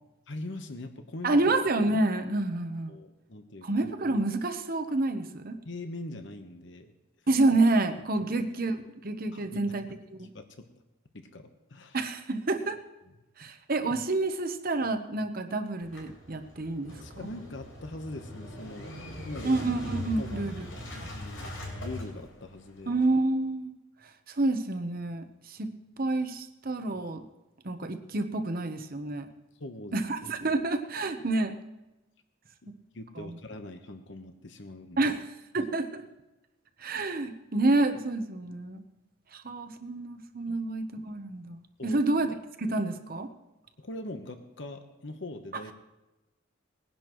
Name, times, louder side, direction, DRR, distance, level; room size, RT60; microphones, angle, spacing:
voice 1, 0.3-1.4 2.9-3.7 5.6-6.9 8.2-8.3 9.3-9.8 10.3-10.7 11.1-12.0 17.0-19.6 20.1-20.6 20.9-22.9 29.6-30.0 32.6-35.1 40.5-40.6 41.8-42.0 43.8-45.7, left 2 dB, 60° left, 7 dB, 1.0 m, -42 dB
voice 2, 1.2-2.9 3.6-5.6 7.3-8.8 9.0-9.8 10.1-10.3 11.9-12.8 13.4-16.9 19.4-20.7 21.0-21.1 22.9-23.7 24.3-25.7 26.0-27.2 27.6-29.3 29.9-31.5 33.2-33.4 35.0-35.2 35.5-36.0 36.8-38.8 39.3-43.3, right 2 dB, 45° right, 7 dB, 0.9 m, -28 dB
Motorcycle / Engine starting, 15.8-23.0, left 1 dB, 75° left, 4.2 m, -41 dB
20.5 x 10.5 x 3.1 m, 1.0 s
head